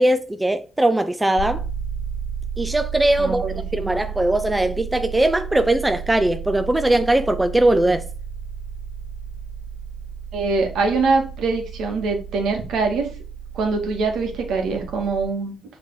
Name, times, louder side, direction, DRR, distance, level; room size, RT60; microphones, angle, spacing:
voice 1, 0.0-1.6 2.6-3.4 3.7-8.1, right 1 dB, 10° right, 0.6 m, -20 dB
sound 1, 1.4-15.2, right 7 dB, 60° left, 1.1 m, -33 dB
voice 2, 3.2-3.5 10.3-13.1 13.5-15.5, right 4 dB, 80° right, 2.0 m, -23 dB
7.2 x 4.0 x 4.9 m
cardioid pair, 90°, 0 cm